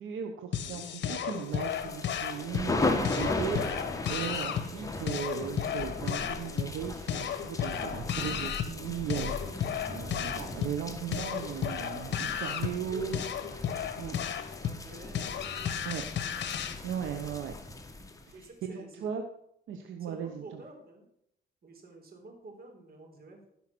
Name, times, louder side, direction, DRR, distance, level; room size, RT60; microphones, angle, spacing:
voice 1, 0.0-13.2 14.0-14.2 15.8-16.0 16.8-17.5 18.6-19.2 19.7-20.6, right 8 dB, 80° right, 5 dB, 1.2 m, -37 dB
sound 1, 0.5-16.8, left 9 dB, 65° left, 1.1 m, -34 dB
sound 2, 1.5-18.5, left 2 dB, 15° left, 1.8 m, -37 dB
sound 3, 5.1-17.6, left 1 dB, ahead, 5.3 m, -59 dB
voice 2, 11.3-13.2 14.0-16.0 18.3-19.1 20.0-21.1 21.6-23.4, right 2 dB, 50° right, 2 dB, 4.0 m, -50 dB
15.5 x 5.7 x 6.2 m, 0.75 s
cardioid pair, 90°, 20 cm